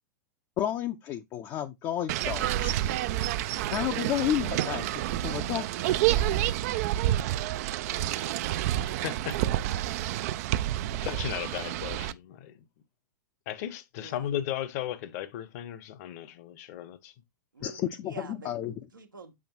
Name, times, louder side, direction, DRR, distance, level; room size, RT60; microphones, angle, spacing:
voice 1, 0.6-2.7 3.7-5.9 17.6-18.7, left 11 dB, 35° left, 0.6 m, -32 dB
sound 1, 2.1-12.1, right 13 dB, 50° right, 0.4 m, -29 dB
voice 2, 7.7-9.0 14.0-14.3 17.5-19.3, right 3 dB, 85° right, 1.2 m, -48 dB
voice 3, 8.9-9.4 11.0-12.6 13.5-17.1 17.6-17.7, left 11 dB, 50° left, 1.0 m, -36 dB
7.4 x 5.2 x 2.9 m
figure-of-eight pair, 95°, 11 cm